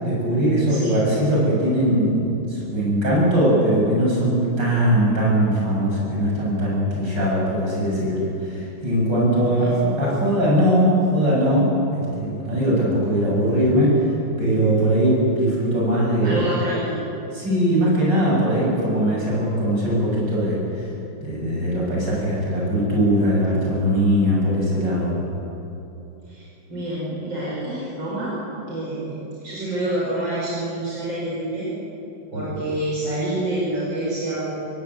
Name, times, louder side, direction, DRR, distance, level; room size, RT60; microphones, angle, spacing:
voice 1, 0.0-16.4 17.3-20.9 21.2-25.2, equal, 70° right, -5 dB, 8.5 m, -20 dB
voice 2, 16.2-17.0 26.3-26.4 26.7-28.3 28.7-31.7 32.3-34.6, right 1 dB, 90° right, -7 dB, 6.4 m, -27 dB
24.5 x 16.5 x 9.8 m, 2.9 s
omnidirectional pair, 2.0 m